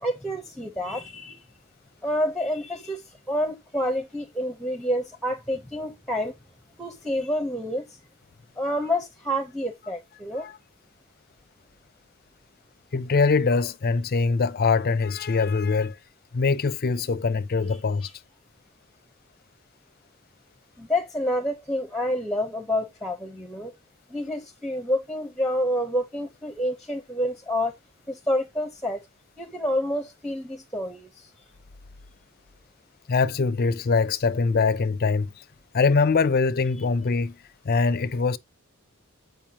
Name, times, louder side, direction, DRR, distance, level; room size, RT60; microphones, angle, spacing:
voice 1, 0.0-1.4 2.0-6.3 6.8-8.0 8.6-10.5 17.7-18.1 20.8-23.7 24.1-27.7 28.1-29.0 29.4-31.3, equal, 5° left, 0.8 m, -28 dB
voice 2, 12.9-16.0 16.3-18.1 33.1-35.3 35.7-37.4 37.6-38.4, left 4 dB, 45° left, 0.5 m, -23 dB
8.6 x 5.2 x 2.9 m
head